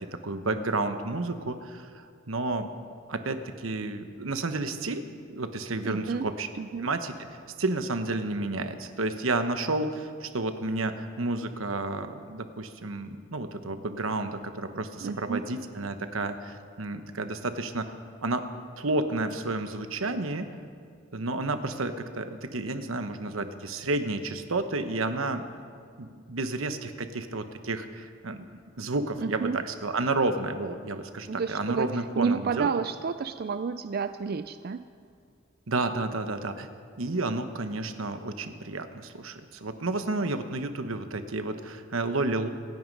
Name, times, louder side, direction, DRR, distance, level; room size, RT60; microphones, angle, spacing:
voice 1, 0.0-2.7 3.1-6.5 6.8-7.1 7.6-17.9 18.2-18.4 18.8-20.5 21.1-25.4 26.0-28.4 28.8-32.7 35.7-36.7 37.0-42.5, right 2 dB, 85° right, 8 dB, 1.1 m, -31 dB
voice 2, 5.8-6.3 6.6-6.9 15.0-15.4 29.2-29.6 31.3-34.8, right 5 dB, 50° right, 10 dB, 0.4 m, -30 dB
26.0 x 9.5 x 5.4 m, 2.2 s
head